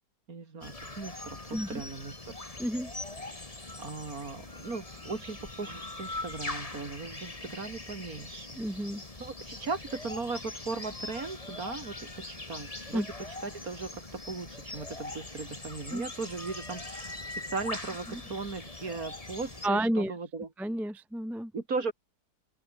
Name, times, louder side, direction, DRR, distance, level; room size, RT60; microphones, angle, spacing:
voice 1, 0.3-2.3 3.8-8.5 9.2-13.1 13.4-20.5 21.5-21.9, right 4 dB, 50° right, 3.2 m, -38 dB
sound 1, 0.6-19.7, left 2 dB, 20° left, 2.4 m, -42 dB
voice 2, 1.5-1.8 2.6-2.9 8.5-9.0 12.9-13.1 15.9-16.1 18.1-18.2 19.6-20.1 20.6-21.5, right 1 dB, ahead, 0.9 m, -31 dB
open air
omnidirectional pair, 1.9 m